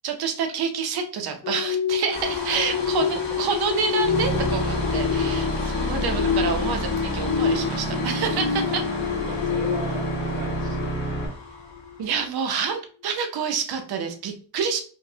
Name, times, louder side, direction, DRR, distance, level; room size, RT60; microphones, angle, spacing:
voice 1, 0.0-8.9 12.0-14.8, right 6 dB, 70° right, 5 dB, 0.7 m, -28 dB
sound 1, 1.4-11.3 11.8-12.0, left 7 dB, 50° left, 0.5 m, -28 dB
sound 2, 2.1-12.3, left 2 dB, 85° left, 1.3 m, -37 dB
sound 3, 4.0-11.3, equal, 25° left, 0.8 m, -29 dB
voice 2, 9.3-11.3, right 3 dB, 20° right, 4 dB, 0.4 m, -40 dB
4.5 x 2.0 x 2.7 m, 0.42 s
wide cardioid pair, 165°, 39 cm